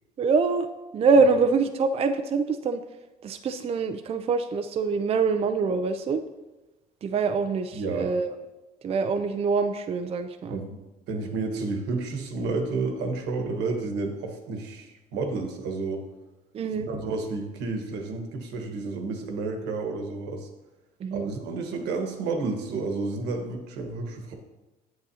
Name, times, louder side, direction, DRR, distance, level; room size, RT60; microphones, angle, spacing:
voice 1, 0.2-0.7 0.9-2.8 3.2-6.2 7.0-8.3 8.8-10.6 16.5-16.9 21.0-21.3, right 4 dB, 35° right, 7 dB, 0.4 m, -24 dB
voice 2, 7.7-8.1 10.5-10.8 11.1-16.0 16.7-20.5 21.1-24.3, right 3 dB, 85° right, 4 dB, 1.3 m, -31 dB
8.2 x 7.6 x 2.8 m, 1.1 s
cardioid pair, 110°, 17 cm